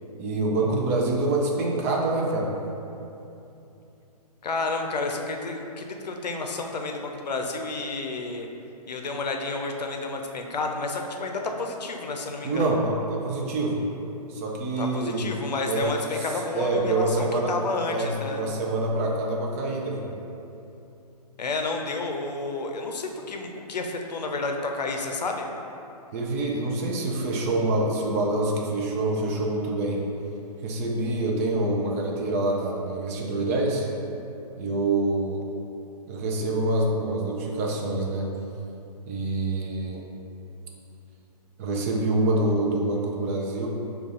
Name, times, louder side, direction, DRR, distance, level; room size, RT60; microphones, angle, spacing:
voice 1, 0.2-2.5 12.4-13.8 14.3-15.3 15.7-16.0 16.5-17.5 17.9-20.1 26.1-30.0 30.6-33.9 34.6-35.4 36.1-38.3 39.1-40.1 41.6-43.7, right 2 dB, 25° right, -1 dB, 0.3 m, -26 dB
voice 2, 4.4-8.5 8.9-12.8 14.8-18.4 21.4-25.5, left 3 dB, 85° left, 3 dB, 0.5 m, -30 dB
5.3 x 2.3 x 3.7 m, 2.8 s
hypercardioid pair, 140°, 21 cm